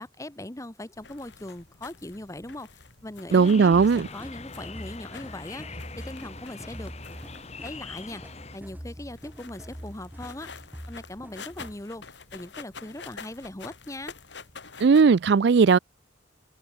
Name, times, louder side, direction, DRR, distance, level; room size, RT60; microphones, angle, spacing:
voice 1, 0.0-6.9 7.6-10.5 10.9-12.0 12.3-14.2, left 1 dB, 15° left, 1.1 m, -40 dB
sound 1, 0.9-15.0, left 5 dB, 65° left, 2.0 m, -48 dB
sound 2, 3.3-8.6, left 4 dB, 35° left, 1.9 m, -43 dB
voice 2, 3.3-4.1 14.8-15.8, right 5 dB, 60° right, 0.4 m, -17 dB
sound 3, 3.7-11.8, equal, 10° right, 3.0 m, -44 dB
head